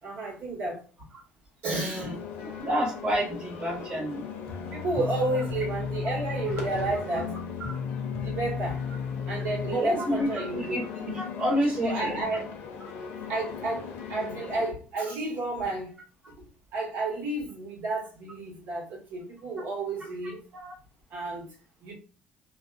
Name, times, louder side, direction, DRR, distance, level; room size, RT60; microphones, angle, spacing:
voice 1, 0.0-0.8 1.6-2.1 4.7-7.4 8.2-8.8 9.3-10.8 11.8-12.5 13.3-15.9 16.3-16.4 16.7-20.4 21.1-21.5 21.8-21.9, right 2 dB, 65° right, 1.4 m, -31 dB
voice 2, 1.7-2.1 2.6-4.2 6.0-6.1 7.1-7.2 7.6-7.7 9.7-12.3 20.5-20.7, equal, 25° right, 0.8 m, -30 dB
sound 1, 1.9-14.7, left 7 dB, 70° left, 0.6 m, -39 dB
sound 2, 4.5-9.8, left 6 dB, 15° left, 0.5 m, -34 dB
2.7 x 2.2 x 2.2 m
supercardioid pair, 85°, 4 cm